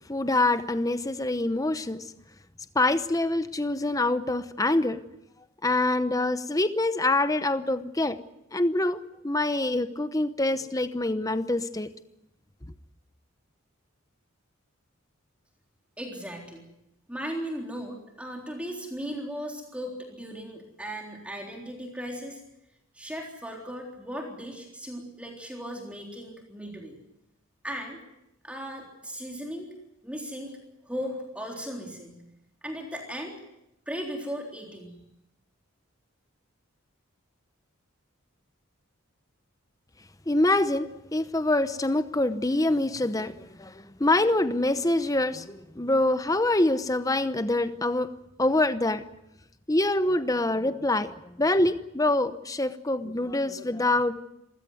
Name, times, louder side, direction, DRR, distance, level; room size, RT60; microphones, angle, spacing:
voice 1, 0.1-2.1 2.7-5.0 5.6-8.2 8.5-9.0 9.2-11.9 40.3-48.1 48.4-49.0 49.7-54.1, left 2 dB, 15° left, 12 dB, 0.9 m, -25 dB
voice 2, 16.0-16.6 17.1-22.4 22.9-27.0 27.6-28.0 28.4-29.7 30.0-30.6 30.8-32.2 32.6-33.4 33.9-35.0, equal, 5° right, 0 dB, 3.7 m, -37 dB
26.5 x 16.0 x 9.5 m, 0.85 s
head